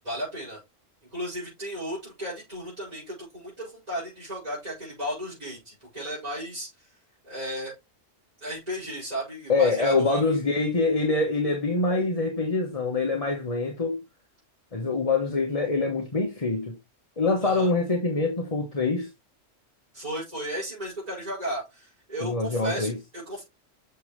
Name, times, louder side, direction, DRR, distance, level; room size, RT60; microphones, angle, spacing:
voice 1, 0.0-0.6 1.1-6.9 7.2-7.7 8.4-10.3 17.4-17.7 19.9-23.4, right 1 dB, 30° right, 5.7 m, -34 dB
voice 2, 9.5-14.0 14.7-16.8 17.2-19.1 22.2-22.9, left 3 dB, 30° left, 1.3 m, -25 dB
7.0 x 6.9 x 3.2 m
omnidirectional pair, 1.3 m